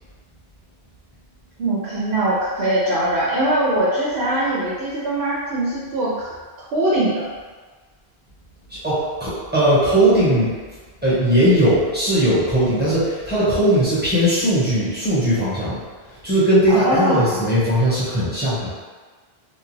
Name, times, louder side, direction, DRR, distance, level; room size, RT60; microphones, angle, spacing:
voice 1, 1.6-6.3 6.7-7.3 16.8-17.4, right 1 dB, 75° right, -7 dB, 0.8 m, -21 dB
voice 2, 8.7-10.5 11.0-15.8 16.1-18.7, right 1 dB, 10° right, -10 dB, 1.0 m, -18 dB
2.8 x 2.2 x 3.1 m, 1.4 s
omnidirectional pair, 1.1 m